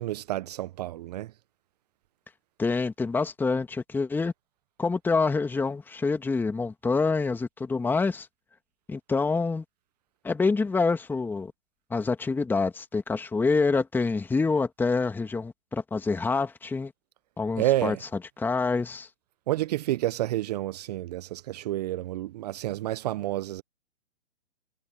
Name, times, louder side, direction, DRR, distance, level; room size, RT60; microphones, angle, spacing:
voice 1, 0.0-1.3 17.6-18.0 19.5-23.6, right 15 dB, 35° right, 1.0 m, -29 dB
voice 2, 2.6-4.3 4.8-8.3 8.9-9.6 10.2-11.5 11.9-16.9 17.4-18.0 18.4-19.1, left 4 dB, 5° left, 2.1 m, -26 dB
figure-of-eight pair, 135°, 37 cm